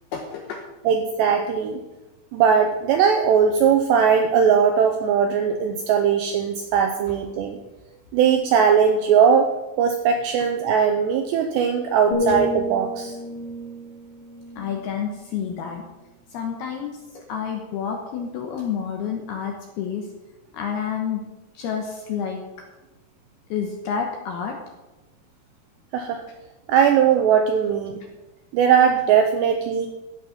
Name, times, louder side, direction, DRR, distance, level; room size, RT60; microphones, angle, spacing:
voice 1, 0.1-0.6 12.3-12.4 14.6-15.8 16.3-20.1 20.5-21.2 21.5-22.4 23.5-24.6, left 7 dB, 75° left, 2 dB, 2.4 m, -29 dB
voice 2, 0.9-1.8 2.3-7.6 8.1-9.5 9.8-13.2 25.9-26.2 26.7-28.0 28.5-29.9, right 7 dB, 80° right, 5 dB, 2.5 m, -19 dB
sound 1, 12.1-16.0 16.5-16.8, left 2 dB, 15° left, 1.8 m, -31 dB
14.0 x 8.5 x 5.8 m, 1.1 s
omnidirectional pair, 5.8 m